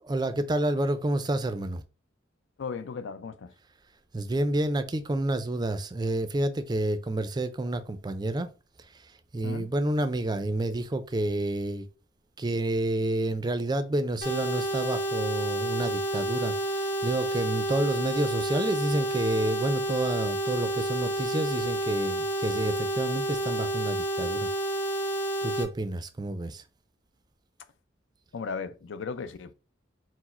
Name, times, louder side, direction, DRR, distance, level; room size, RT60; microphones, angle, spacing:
voice 1, 0.0-1.8 4.1-8.5 8.9-9.0 9.3-11.9 12.4-24.5 25.4-26.6, right 1 dB, 20° right, 0.4 m, -29 dB
voice 2, 2.6-3.5 9.4-9.7 28.3-29.5, left 5 dB, 70° left, 0.4 m, -36 dB
sound 1, 14.2-25.6, right 1 dB, 50° left, 1.3 m, -30 dB
4.6 x 2.1 x 4.2 m
head